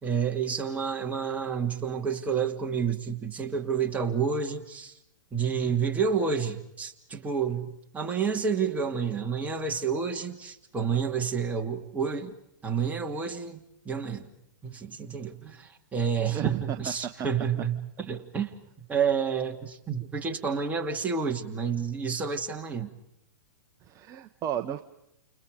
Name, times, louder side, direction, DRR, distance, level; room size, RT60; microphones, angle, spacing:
voice 1, 0.0-4.9 5.3-12.3 12.6-14.3 14.6-18.5 18.9-22.9, right 6 dB, 15° right, 2.6 m, -29 dB
voice 2, 16.3-16.9 23.8-24.8, right 10 dB, 30° right, 1.2 m, -33 dB
30.0 x 29.5 x 5.2 m
hypercardioid pair, 115°, 11 cm